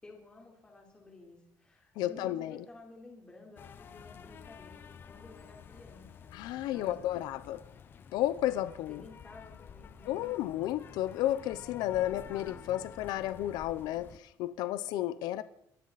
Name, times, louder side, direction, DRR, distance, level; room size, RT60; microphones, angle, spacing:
voice 1, 0.0-6.3 6.7-7.0 8.9-10.2, left 2 dB, 15° left, -1 dB, 3.8 m, -53 dB
voice 2, 2.0-2.6 6.3-7.6 8.1-9.0 10.1-15.4, left 13 dB, 80° left, 14 dB, 0.8 m, -32 dB
sound 1, 3.6-14.2, left 7 dB, 30° left, 0.8 m, -50 dB
25.0 x 14.0 x 4.2 m, 0.71 s
cardioid pair, 175°, 7 cm